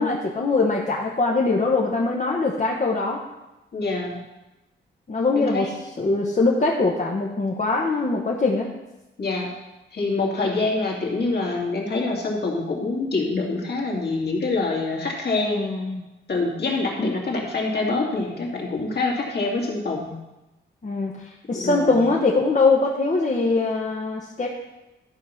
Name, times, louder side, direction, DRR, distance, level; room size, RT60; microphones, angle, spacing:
voice 1, 0.0-3.2 5.1-5.7 6.0-8.7 15.4-16.0 20.8-24.5, left 3 dB, 40° left, -2 dB, 1.2 m, -22 dB
voice 2, 3.7-4.1 5.3-5.7 9.2-9.5 9.9-15.6 16.3-20.1 21.5-22.0, left 3 dB, 55° left, -2 dB, 2.5 m, -25 dB
12.0 x 4.8 x 5.8 m, 1.0 s
wide cardioid pair, 100°, 21 cm